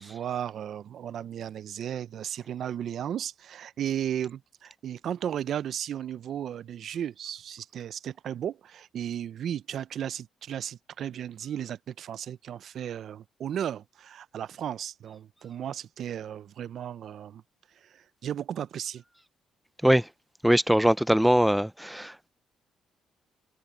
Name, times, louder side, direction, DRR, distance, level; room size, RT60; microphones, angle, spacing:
voice 1, 0.0-17.4 17.8-19.0, right 10 dB, 65° right, 0.5 m, -35 dB
voice 2, 20.4-22.3, equal, 5° right, 0.4 m, -22 dB
cardioid pair, 90°, 0 cm